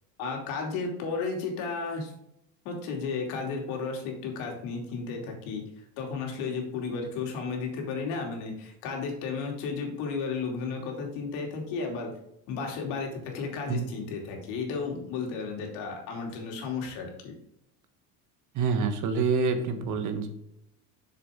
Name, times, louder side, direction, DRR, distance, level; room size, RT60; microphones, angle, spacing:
voice 1, 0.2-2.1 2.6-5.6 6.0-12.1 12.5-17.3, left 4 dB, 75° left, 1 dB, 2.9 m, -33 dB
voice 2, 18.5-20.3, right 4 dB, 45° right, 8 dB, 1.3 m, -27 dB
6.9 x 6.8 x 3.7 m, 0.76 s
cardioid pair, 130°, 41 cm